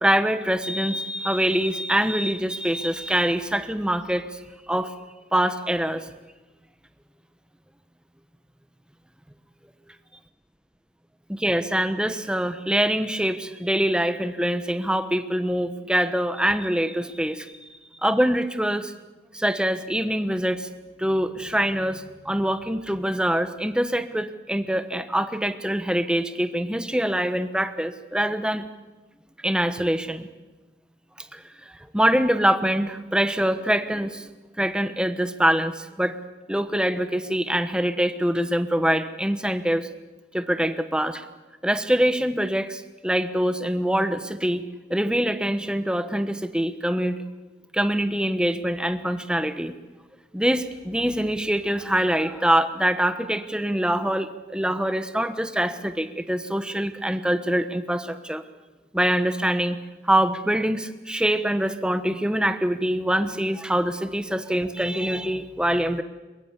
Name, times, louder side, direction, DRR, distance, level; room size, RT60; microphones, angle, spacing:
voice 1, 0.0-4.2 4.7-4.9 5.3-6.0 11.3-17.5 18.0-18.9 19.3-20.7 21.0-28.6 29.4-30.3 31.2-34.3 34.6-36.2 36.5-39.9 40.3-41.2 41.6-44.6 44.9-47.2 47.7-49.7 50.3-58.4 58.9-59.8 60.0-66.0, right 1 dB, 5° right, 10 dB, 1.0 m, -24 dB
22.5 x 21.5 x 8.2 m, 1.2 s
head